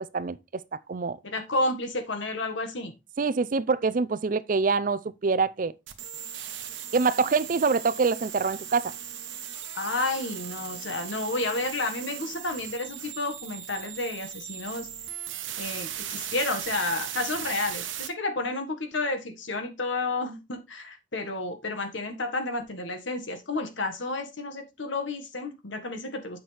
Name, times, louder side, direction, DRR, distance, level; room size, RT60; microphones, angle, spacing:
voice 1, 0.7-1.2 3.2-5.7 6.9-8.9, right 4 dB, 45° right, 0.5 m, -25 dB
voice 2, 1.2-2.9 9.7-14.9 15.6-26.4, left 2 dB, 80° left, 1.7 m, -31 dB
sound 1, 5.9-18.1, right 10 dB, 90° right, 1.1 m, -38 dB
8.7 x 6.0 x 3.4 m
head